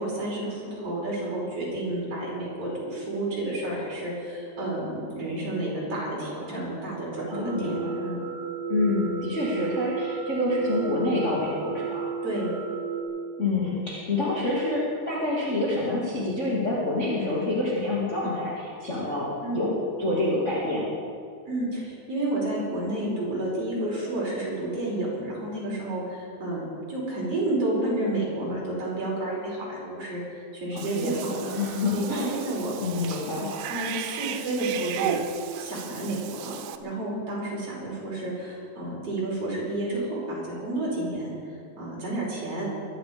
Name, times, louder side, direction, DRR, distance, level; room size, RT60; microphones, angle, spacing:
voice 1, 0.0-8.2 12.2-12.5 19.4-19.7 21.5-26.6 26.9-31.5 31.9-32.8 33.7-35.2 35.6-36.5 36.8-41.3 41.8-42.7, right 1 dB, 30° right, -5 dB, 5.7 m, -30 dB
voice 2, 7.3-8.0 8.7-12.1 13.4-19.3 19.5-20.9 30.7-32.3 32.8-33.5, left 2 dB, 25° left, -7 dB, 1.5 m, -27 dB
sound 1, 7.3-13.0, right 6 dB, 65° right, 3.2 m, -33 dB
Cat / Bathtub (filling or washing), 30.8-36.8, right 10 dB, 90° right, 3.2 m, -35 dB
23.0 x 11.5 x 5.2 m, 2.4 s
omnidirectional pair, 5.3 m